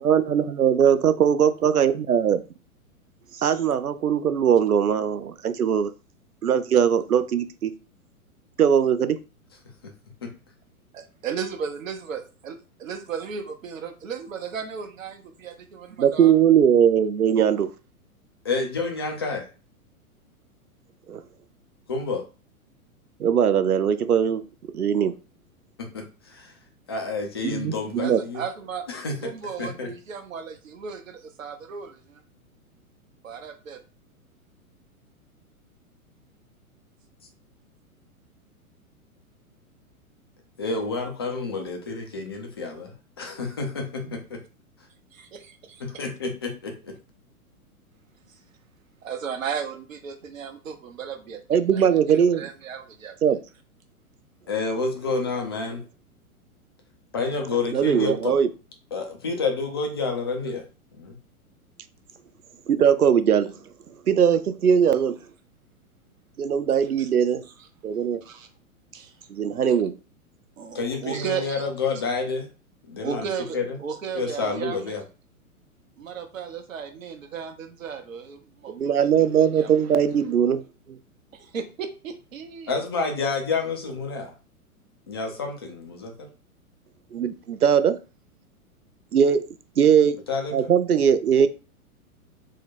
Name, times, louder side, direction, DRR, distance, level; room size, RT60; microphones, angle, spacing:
voice 1, 0.0-2.4 3.4-5.9 6.4-7.7 8.6-9.2 16.0-17.7 21.1-21.2 23.2-24.4 24.7-25.1 27.4-28.2 51.5-52.5 53.2-53.4 57.7-58.5 62.7-63.6 64.1-65.2 66.4-67.5 67.8-68.2 69.3-70.0 78.7-80.6 80.9-81.0 87.1-88.0 89.1-89.5 89.8-90.2 90.5-91.5, right 8 dB, 85° right, 12 dB, 0.5 m, -20 dB
voice 2, 3.3-3.6 10.9-16.3 28.0-28.8 29.2-32.2 33.2-33.8 45.1-45.8 48.3-48.4 49.0-53.2 67.0-67.1 67.6-67.7 68.2-68.5 68.9-69.3 70.6-71.6 73.0-74.9 76.0-78.9 79.4-79.7 80.0-80.1 81.3-82.7, right 6 dB, 60° right, 6 dB, 0.9 m, -35 dB
voice 3, 18.4-19.5 21.9-22.2 25.8-26.5 26.9-28.4 28.9-29.1 29.6-29.9 40.6-44.4 45.8-46.9 54.5-55.8 57.1-58.3 58.9-60.7 60.9-61.2 70.7-72.5 72.9-73.3 73.5-73.8 74.1-75.0 82.7-84.3 85.1-86.3 90.3-90.7, left 4 dB, 20° left, 2 dB, 0.3 m, -29 dB
3.8 x 2.2 x 4.0 m, 0.34 s
figure-of-eight pair, 110°, 44 cm